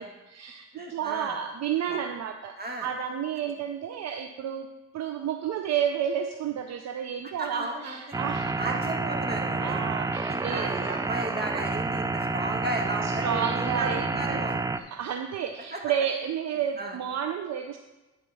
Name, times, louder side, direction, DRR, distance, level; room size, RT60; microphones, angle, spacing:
voice 1, 0.0-4.7 4.9-8.8 9.6-11.0 13.0-14.4 14.8-17.8, right 8 dB, 60° right, 6 dB, 0.6 m, -31 dB
voice 2, 0.7-1.4 1.9-2.0 2.6-2.9 7.4-8.2 8.6-9.8 10.3-14.8 15.7-15.8 16.8-17.0, right 2 dB, 30° right, 2 dB, 1.6 m, -34 dB
sound 1, 8.1-14.8, right 3 dB, 10° right, 0.3 m, -29 dB
10.0 x 4.5 x 5.4 m, 1.1 s
cardioid pair, 90°, 30 cm